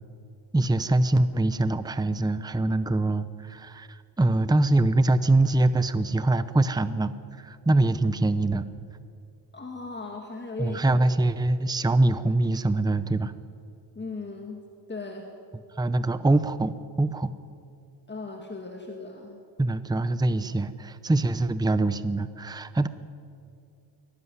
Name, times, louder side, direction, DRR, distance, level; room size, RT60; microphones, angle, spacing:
voice 1, 0.5-7.1 7.4-8.7 10.6-13.3 15.8-17.3 19.6-22.9, right 2 dB, 10° right, 13 dB, 0.7 m, -24 dB
voice 2, 9.5-10.8 14.0-15.3 18.1-19.4, left 3 dB, 25° left, 2 dB, 2.2 m, -37 dB
22.5 x 18.0 x 9.8 m, 2.5 s
wide cardioid pair, 140°, 45 cm